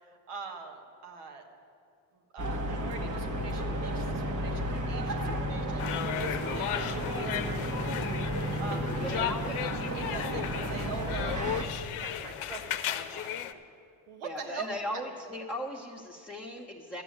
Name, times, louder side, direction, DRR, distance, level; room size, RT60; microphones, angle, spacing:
voice 1, 0.3-1.4 2.3-8.1 8.6-9.3 9.9-13.4 14.1-15.0, right 5 dB, 85° right, 3 dB, 1.5 m, -43 dB
sound 1, 2.4-11.6, equal, 35° right, 1.3 m, -33 dB
voice 2, 5.2-5.6 6.3-6.6 8.6-9.8 14.2-17.0, left 1 dB, 5° left, -5 dB, 1.2 m, -39 dB
sound 2, 5.8-13.5, left 11 dB, 75° left, 0.8 m, -35 dB
13.0 x 6.1 x 9.6 m, 2.4 s
cardioid pair, 75°, 50 cm